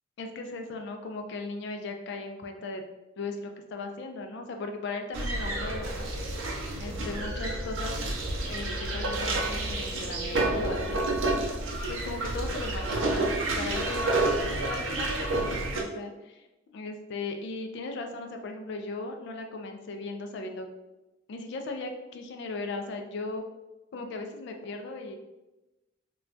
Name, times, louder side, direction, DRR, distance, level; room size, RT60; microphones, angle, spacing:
voice 1, 0.2-2.8 3.2-6.1 6.8-8.0 8.5-11.1 11.9-13.2 13.6-20.7 21.3-23.4 23.9-25.2, left 3 dB, 60° left, 5 dB, 0.3 m, -37 dB
sound 1, 5.1-15.8, right 2 dB, 85° right, 0.5 m, -29 dB
2.2 x 2.2 x 3.7 m, 1.0 s
head